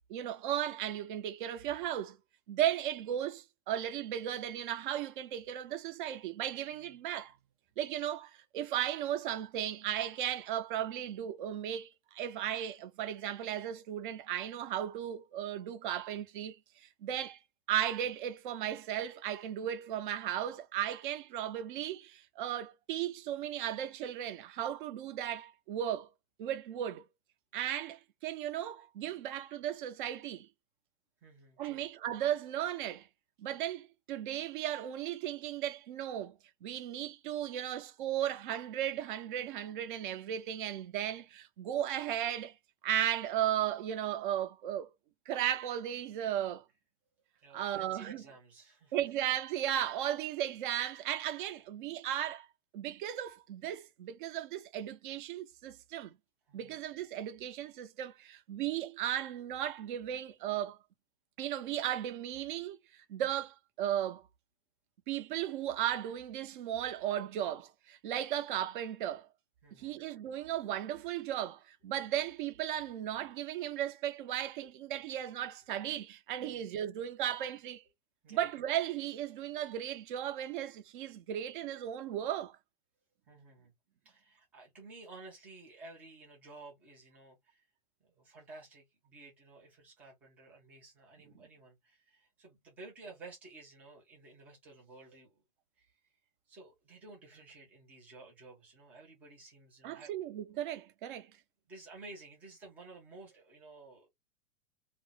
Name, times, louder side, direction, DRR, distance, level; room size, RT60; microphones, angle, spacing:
voice 1, 0.1-2.2 2.5-7.3 7.8-17.4 17.7-26.1 26.4-27.0 27.5-30.5 31.6-33.1 33.4-42.6 42.8-44.9 45.3-46.6 47.5-48.2 48.9-52.5 52.7-56.1 56.5-60.8 61.4-64.2 65.1-69.3 69.8-77.8 78.3-82.6 99.8-101.3, right 11 dB, 45° right, 0.6 m, -36 dB
voice 2, 31.2-31.8 47.4-48.9 56.5-56.8 69.6-70.0 74.6-74.7 76.4-76.7 78.2-78.5 83.3-83.7 84.0-87.7 88.0-95.4 95.8-96.0 96.5-100.1 101.7-104.1, right 3 dB, 5° right, 0.3 m, -53 dB
2.4 x 2.0 x 3.8 m
hypercardioid pair, 155°, 36 cm